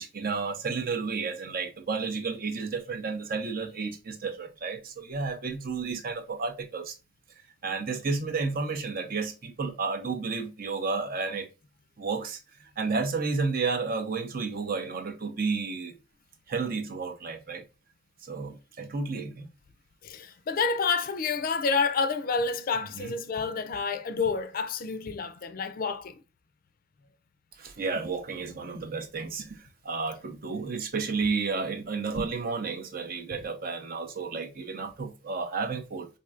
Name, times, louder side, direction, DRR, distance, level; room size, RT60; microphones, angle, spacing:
voice 1, 0.0-6.9 7.6-11.5 12.0-12.4 12.8-15.9 16.5-17.6 18.2-19.5 22.9-23.1 27.6-36.1, right 4 dB, 50° right, 0.6 m, -32 dB
voice 2, 20.0-26.2 30.7-30.8 33.3-33.4, left 5 dB, 50° left, 0.4 m, -29 dB
4.3 x 2.7 x 2.4 m
head